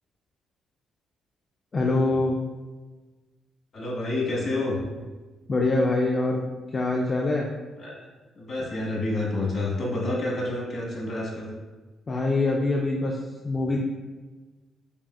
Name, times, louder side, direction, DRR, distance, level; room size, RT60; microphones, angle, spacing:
voice 1, 1.7-2.4 5.5-6.4 6.7-7.5 12.1-13.2 13.4-13.8, left 2 dB, 35° left, -1 dB, 0.4 m, -24 dB
voice 2, 3.7-4.8 7.8-8.0 8.3-11.5, left 2 dB, 50° left, -3 dB, 1.2 m, -28 dB
5.3 x 2.4 x 2.3 m, 1.3 s
cardioid pair, 90°, 0 cm